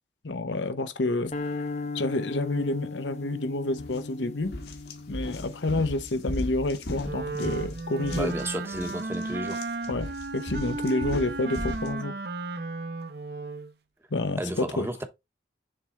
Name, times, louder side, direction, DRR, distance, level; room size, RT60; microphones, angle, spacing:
voice 1, 0.2-1.3 1.9-4.5 5.1-8.3 9.9-12.1 14.1-14.9, left 2 dB, 90° left, 0.9 m, -29 dB
sound 1, 1.3-7.7, left 3 dB, 40° left, 0.6 m, -38 dB
sound 2, 3.8-4.0 4.4-11.9, left 1 dB, 60° left, 1.3 m, -37 dB
Wind instrument woodwind instrument, 7.0-13.7, right 3 dB, 60° right, 0.8 m, -34 dB
voice 2, 8.1-9.6 14.4-15.0, right 1 dB, 15° right, 0.8 m, -32 dB
6.7 x 3.5 x 4.1 m
head